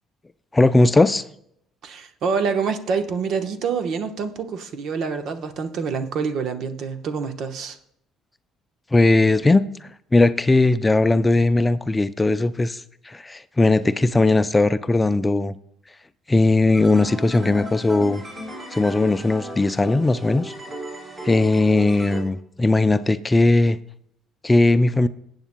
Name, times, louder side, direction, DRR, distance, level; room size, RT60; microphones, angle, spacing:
voice 1, 0.5-1.2 8.9-15.6 16.3-18.2 18.7-20.5 21.2-23.8 24.4-25.1, left 2 dB, 15° left, 12 dB, 0.4 m, -18 dB
voice 2, 1.8-7.8, right 5 dB, 60° right, 7 dB, 1.0 m, -26 dB
sound 1, 16.7-22.2, equal, 25° right, 3.9 m, -36 dB
19.5 x 8.0 x 2.2 m, 0.73 s
supercardioid pair, 85°, 0 cm